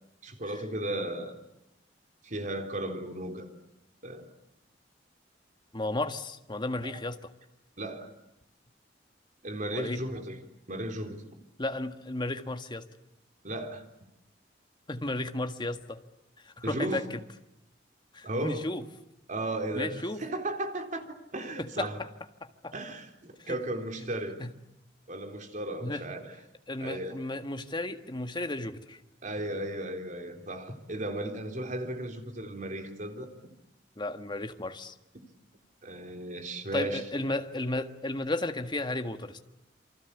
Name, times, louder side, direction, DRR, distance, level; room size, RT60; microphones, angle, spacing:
voice 1, 0.2-1.4 2.2-3.5 4.0-4.3 6.8-7.0 7.8-8.1 9.4-10.4 10.7-11.2 13.4-13.8 16.6-17.0 18.2-18.7 19.3-21.1 21.3-22.0 22.7-24.4 25.1-26.3 26.8-27.2 29.2-33.3 35.8-37.0, right 1 dB, 45° right, 3.8 m, -35 dB
voice 2, 5.7-7.2 9.7-10.0 11.6-12.9 14.9-16.0 16.4-17.0 18.1-18.8 19.7-20.2 21.6-22.1 22.6-22.7 23.4-23.6 24.4-24.5 25.8-26.0 26.7-29.0 34.0-34.9 36.7-39.4, left 2 dB, 25° left, 1.7 m, -33 dB
28.5 x 25.0 x 8.4 m
head